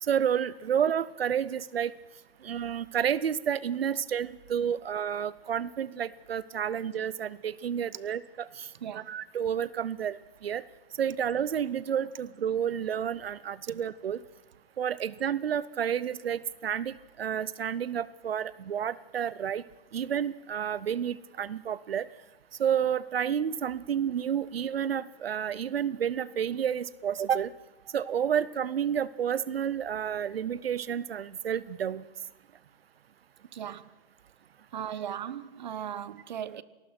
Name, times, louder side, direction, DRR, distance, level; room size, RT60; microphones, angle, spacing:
voice 1, 0.0-1.9 2.4-10.2 10.4-10.6 11.0-14.2 14.8-19.6 19.9-22.1 22.6-27.5 27.9-32.0, right 8 dB, 85° right, 0.8 m, -30 dB
voice 2, 33.5-33.9 34.7-36.6, right 9 dB, 50° right, 1.0 m, -37 dB
26.5 x 18.5 x 6.0 m
hypercardioid pair, 165°, 29 cm